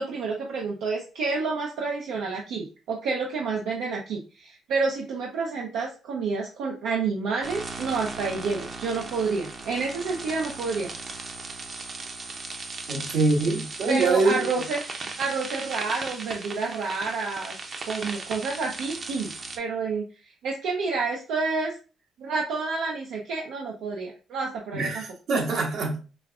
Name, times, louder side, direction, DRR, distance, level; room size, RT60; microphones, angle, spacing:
voice 1, 0.0-10.9 13.9-17.6 17.9-19.3 19.6-21.8 22.2-25.0, right 4 dB, 90° right, 0.6 m, -29 dB
sound 1, 7.4-19.6, right 3 dB, 45° right, 0.7 m, -37 dB
voice 2, 12.9-14.5 24.7-26.0, right 3 dB, 75° right, 1.2 m, -24 dB
5.0 x 2.4 x 2.4 m
cardioid pair, 90°, 0 cm